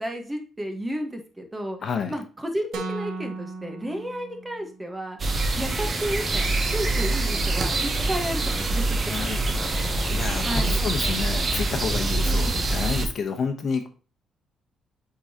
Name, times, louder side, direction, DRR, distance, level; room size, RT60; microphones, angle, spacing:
voice 1, 0.0-1.8 2.1-8.8 10.4-10.8 12.2-12.6, equal, 15° right, 4 dB, 1.4 m, -32 dB
voice 2, 1.8-2.1 9.1-13.9, left 6 dB, 55° left, 6 dB, 0.9 m, -30 dB
sound 1, 2.7-4.8, right 3 dB, 90° right, 1.3 m, -36 dB
sound 2, 5.2-13.1, right 2 dB, 35° right, 1.1 m, -25 dB
8.4 x 3.9 x 2.9 m, 0.36 s
cardioid pair, 90°, 0 cm